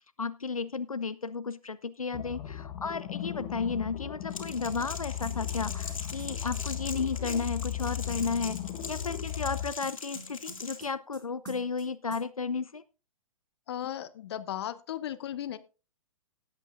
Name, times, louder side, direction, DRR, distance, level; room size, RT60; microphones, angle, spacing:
voice 1, 0.0-8.6 8.9-12.8, left 5 dB, 90° left, 15 dB, 0.4 m, -33 dB
sound 1, 2.1-9.7, left 11 dB, 30° left, 1.2 m, -36 dB
Crackle, 4.3-10.8, left 4 dB, 70° left, 2.3 m, -42 dB
sound 2, 5.2-6.9 9.8-11.2 11.5-11.9 12.1-12.2, right 2 dB, 25° right, 2.3 m, -47 dB
voice 2, 13.7-15.6, left 11 dB, 50° left, 15 dB, 0.8 m, -36 dB
18.5 x 8.1 x 2.5 m, 0.33 s
figure-of-eight pair, 115°, 18 cm